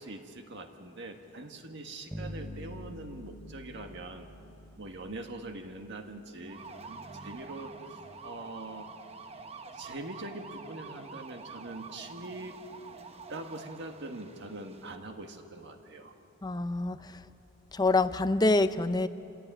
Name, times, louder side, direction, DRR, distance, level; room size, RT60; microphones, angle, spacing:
voice 1, 0.0-4.3 4.8-8.9 9.7-12.7 13.3-16.1, right 2 dB, 55° right, 4 dB, 1.7 m, -43 dB
sound 1, 2.1-5.5, equal, 5° right, 3.2 m, -44 dB
sound 2, 6.5-15.0, right 4 dB, 30° right, 0.9 m, -47 dB
voice 2, 16.4-17.2 17.7-19.1, left 2 dB, 20° left, 12 dB, 0.5 m, -26 dB
28.0 x 16.5 x 9.0 m, 2.8 s
head